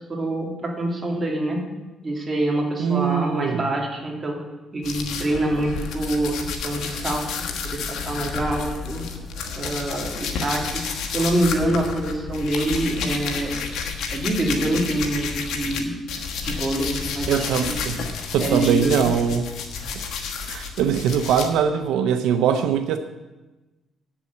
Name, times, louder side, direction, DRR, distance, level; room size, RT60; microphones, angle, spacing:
voice 1, 0.0-1.6 2.0-4.4 4.7-7.2 7.6-9.0 9.6-10.8 11.1-13.6 14.1-15.9 16.4-17.8 18.4-19.1, right 1 dB, 30° right, 0 dB, 2.7 m, -25 dB
voice 2, 2.8-3.7 17.3-18.1 18.3-19.5 20.5-23.0, right 8 dB, 90° right, 7 dB, 0.6 m, -22 dB
sound 1, 4.8-15.8 16.1-21.5, left 5 dB, 80° left, 1.3 m, -30 dB
8.4 x 6.9 x 8.2 m, 1.1 s
cardioid pair, 90°, 0 cm